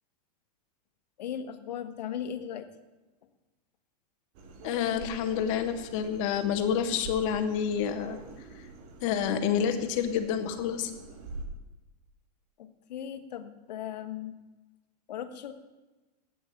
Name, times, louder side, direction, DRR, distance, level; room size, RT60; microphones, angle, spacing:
voice 1, 1.2-2.7 12.6-14.4 15.1-15.5, left 9 dB, 85° left, 9 dB, 1.3 m, -37 dB
sound 1, 4.3-11.4, right 3 dB, 50° right, 2.1 m, -46 dB
voice 2, 4.6-8.2 8.5-8.6 9.0-10.9, left 8 dB, 50° left, 8 dB, 1.2 m, -28 dB
8.5 x 7.9 x 8.5 m, 1.1 s
supercardioid pair, 150°, 21 cm